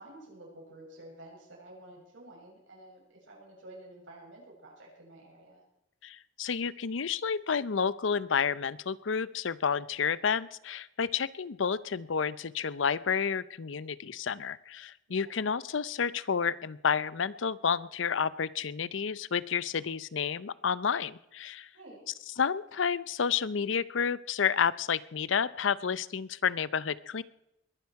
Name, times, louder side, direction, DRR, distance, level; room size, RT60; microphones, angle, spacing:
voice 1, 0.0-5.6 15.1-15.4 21.7-22.0, right 1 dB, 85° right, -2 dB, 7.3 m, -51 dB
voice 2, 6.0-21.7 22.4-27.2, left 6 dB, 80° left, 19 dB, 0.6 m, -30 dB
21.5 x 11.5 x 4.7 m, 0.83 s
head